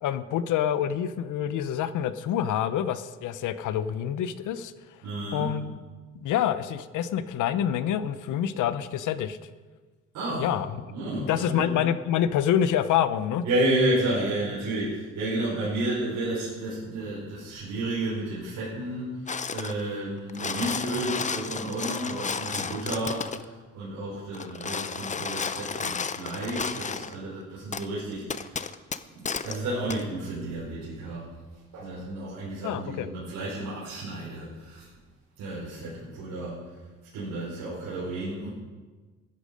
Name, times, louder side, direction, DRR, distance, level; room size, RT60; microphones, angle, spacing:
voice 1, 0.0-4.7 5.3-5.8 6.2-9.4 10.4-10.7 11.2-13.4 32.6-33.1, left 10 dB, 80° left, 13 dB, 0.8 m, -27 dB
voice 2, 5.0-5.5 10.1-10.5 10.9-11.7 13.4-28.7 29.1-31.3 31.7-34.9 35.4-36.7 37.1-38.5, right 1 dB, 85° right, -8 dB, 4.6 m, -31 dB
sound 1, 19.3-19.8 20.2-23.5 24.3-27.2 27.7-27.9 28.3-29.6 29.9-30.0, left 5 dB, 25° left, 0.6 m, -32 dB
15.0 x 10.5 x 5.2 m, 1.4 s
cardioid pair, 90°, 30 cm